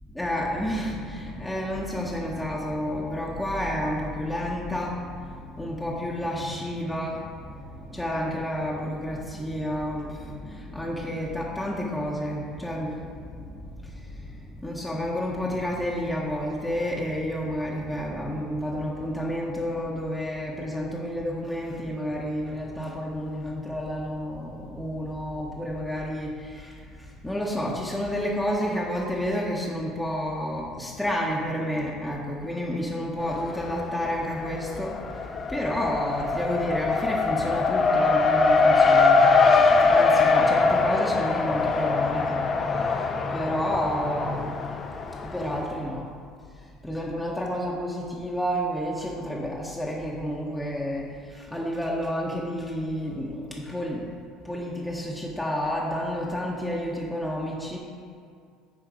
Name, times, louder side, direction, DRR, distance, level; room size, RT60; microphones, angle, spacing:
voice 1, 0.1-35.0 35.5-39.3 39.8-44.7 45.2-46.1 46.6-54.1 54.4-57.8, equal, 5° left, -3 dB, 1.0 m, -30 dB
Race car auto racing, 33.2-34.0 34.3-45.6, left 4 dB, 35° left, 0.5 m, -22 dB
7.6 x 4.5 x 4.8 m, 2.2 s
supercardioid pair, 85°, 0 cm